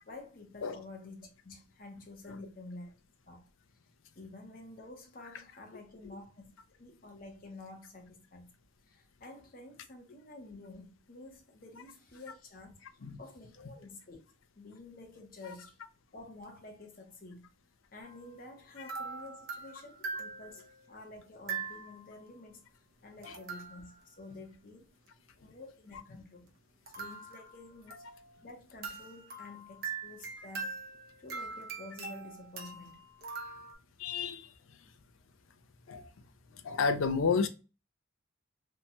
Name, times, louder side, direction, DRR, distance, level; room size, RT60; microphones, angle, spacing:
voice 1, 0.1-2.9 3.3-3.5 4.2-6.5 6.8-8.5 8.9-12.9 13.2-14.2 14.6-15.8 16.1-17.5 17.9-22.6 23.0-24.9 25.4-26.5 27.0-28.0 28.4-30.8 31.2-33.0, left 2 dB, 45° left, 0.7 m, -50 dB
sound 1, 18.0-18.3 18.9-20.8 21.5-22.1 23.2-24.3 26.9-28.5 28.8-33.7, right 4 dB, 50° right, 0.5 m, -42 dB
voice 2, 34.0-34.5 35.9-36.1 36.5-37.5, left 5 dB, 80° left, 0.4 m, -31 dB
2.7 x 2.2 x 2.7 m
head